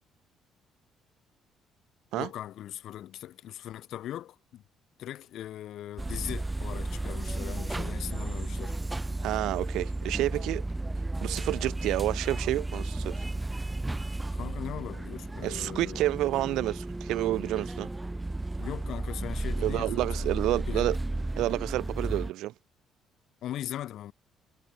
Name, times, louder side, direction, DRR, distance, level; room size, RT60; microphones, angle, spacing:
voice 1, 2.1-4.6 5.0-8.8 14.3-16.2 18.6-21.0 23.4-24.1, left 12 dB, 70° left, 2.9 m, -40 dB
sound 1, 6.0-22.3, right 2 dB, 15° right, 1.6 m, -33 dB
voice 2, 9.2-10.6 11.2-13.2 15.4-17.9 19.6-21.0 21.4-22.5, right 15 dB, 85° right, 2.2 m, -29 dB
cardioid pair, 100°, 0 cm